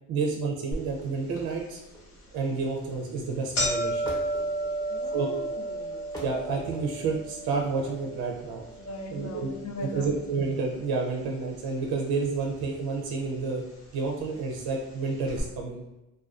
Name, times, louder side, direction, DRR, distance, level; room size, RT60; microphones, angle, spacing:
voice 1, 0.1-1.8 2.3-4.0 5.1-5.3 6.2-8.6 9.1-9.5 9.8-13.6 13.9-15.8, right 4 dB, 65° right, 0 dB, 0.5 m, -30 dB
sound 1, 0.7-0.8 1.4-1.5 2.3-2.5 2.8-2.9 3.2-11.4 11.6-12.4 13.2-13.3 14.2-14.3 14.6-14.7 15.3-15.4, right 1 dB, 85° left, 0.8 m, -33 dB
sound 2, 1.0-13.8, equal, 10° left, 0.8 m, -48 dB
voice 2, 4.9-6.2 8.8-10.1, left 1 dB, 45° left, 3 dB, 0.5 m, -39 dB
2.4 x 2.2 x 2.3 m, 0.97 s
supercardioid pair, 45°, 40 cm